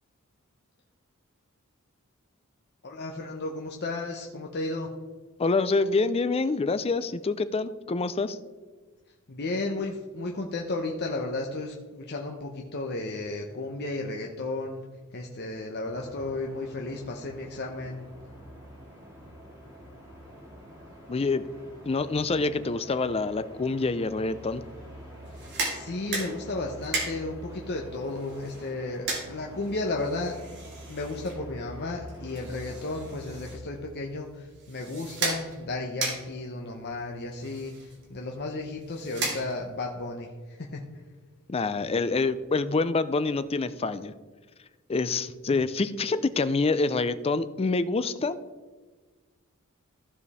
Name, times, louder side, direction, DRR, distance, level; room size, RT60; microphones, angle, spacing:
voice 1, 2.8-4.9 9.3-14.8 15.1-18.0 25.6-30.4 30.8-41.0, left 2 dB, 50° left, 1 dB, 0.8 m, -34 dB
voice 2, 5.4-8.4 21.1-21.4 21.9-24.6 41.5-44.1 44.9-48.4, left 3 dB, 25° left, 13 dB, 0.4 m, -26 dB
sound 1, 15.8-33.6, equal, 15° right, 3.3 m, -46 dB
sound 2, 25.2-39.9, right 3 dB, 55° right, 2.6 m, -37 dB
14.5 x 5.1 x 4.2 m, 1.4 s
head